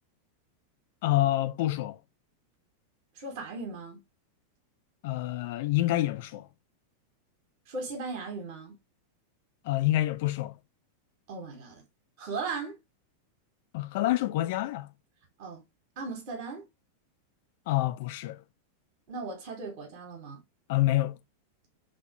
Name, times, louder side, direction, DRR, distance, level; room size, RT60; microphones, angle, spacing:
voice 1, 1.0-2.0 5.0-6.5 9.6-10.5 13.7-14.9 17.7-18.4 20.7-21.2, left 15 dB, 50° left, 0.4 m, -27 dB
voice 2, 3.2-4.0 7.7-8.7 11.3-11.8 12.2-12.8 15.4-15.6 16.0-16.6 19.1-20.4, right 4 dB, 50° right, 1.2 m, -37 dB
3.0 x 2.8 x 2.8 m
figure-of-eight pair, 90°, 0 cm